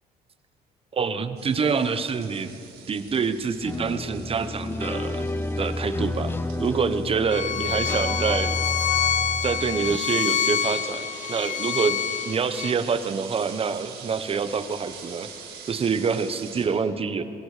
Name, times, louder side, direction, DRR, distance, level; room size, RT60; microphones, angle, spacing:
voice 1, 0.9-2.5 2.9-5.3 5.6-6.3 6.6-9.0 9.4-12.0 12.2-15.3 15.6-17.2, right 5 dB, 35° right, 11 dB, 1.1 m, -26 dB
sound 1, 1.4-16.6, right 6 dB, 75° right, 4.8 m, -44 dB
sound 2, 3.6-10.0, left 2 dB, 15° left, 0.8 m, -30 dB
Bowed string instrument, 7.3-12.7, left 9 dB, 50° left, 0.7 m, -27 dB
27.0 x 21.0 x 5.1 m, 2.7 s
cardioid pair, 110°, 17 cm